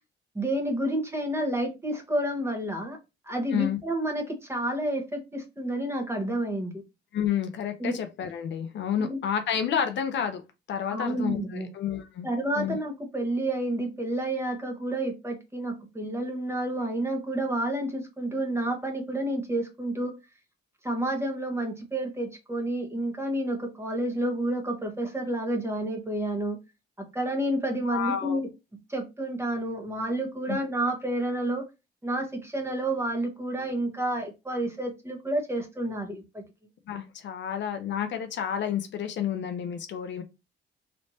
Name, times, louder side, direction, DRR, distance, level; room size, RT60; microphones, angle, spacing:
voice 1, 0.3-3.0 3.3-6.7 7.8-8.0 9.0-9.2 10.9-11.7 12.2-20.2 20.8-26.6 27.1-28.5 28.9-31.6 32.0-36.4, right 1 dB, 10° right, 1.1 m, -30 dB
voice 2, 7.1-10.4 10.7-12.3 12.6-12.8 27.8-28.4 30.5-30.6 36.9-40.2, left 8 dB, 65° left, 0.6 m, -30 dB
3.3 x 3.0 x 2.7 m
cardioid pair, 90°, 20 cm